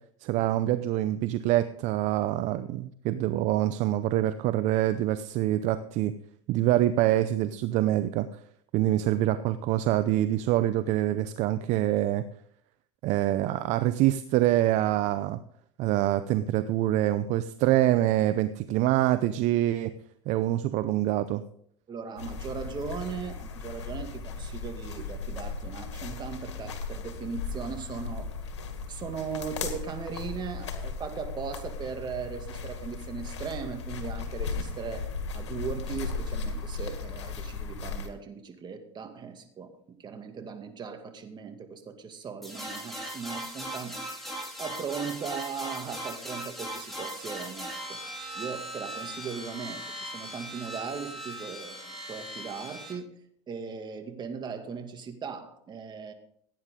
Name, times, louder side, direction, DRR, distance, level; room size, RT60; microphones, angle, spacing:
voice 1, 0.2-6.1 6.5-8.3 8.7-12.2 13.0-15.4 15.8-19.9 20.3-21.4, right 14 dB, 55° right, 12 dB, 0.7 m, -25 dB
voice 2, 21.9-28.3 28.9-39.7 40.0-44.0 44.6-48.0 48.3-53.1 53.5-56.1, right 6 dB, 30° right, 5 dB, 2.3 m, -38 dB
sound 1, 22.2-38.1, left 4 dB, 90° left, 2.0 m, -36 dB
sound 2, 42.4-52.9, right 1 dB, ahead, 5.1 m, -39 dB
16.5 x 9.5 x 3.8 m, 0.66 s
hypercardioid pair, 95°, 14 cm